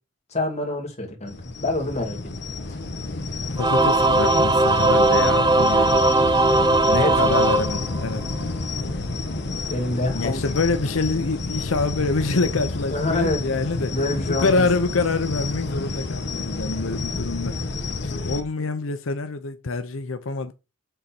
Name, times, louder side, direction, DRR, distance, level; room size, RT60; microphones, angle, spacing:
voice 1, 0.3-1.4 1.6-2.2 6.9-7.3 9.7-10.4 12.9-13.4 13.9-14.7 18.1-18.2, left 2 dB, 35° left, 2.6 m, -26 dB
sound 1, 1.3-18.4, left 3 dB, 55° left, 1.2 m, -29 dB
voice 2, 3.5-6.0 6.9-8.2 10.1-17.6 18.0-20.5, left 3 dB, 85° left, 0.7 m, -26 dB
Singing / Musical instrument, 3.6-8.4, right 2 dB, 20° right, 0.6 m, -19 dB
7.9 x 4.2 x 5.9 m
head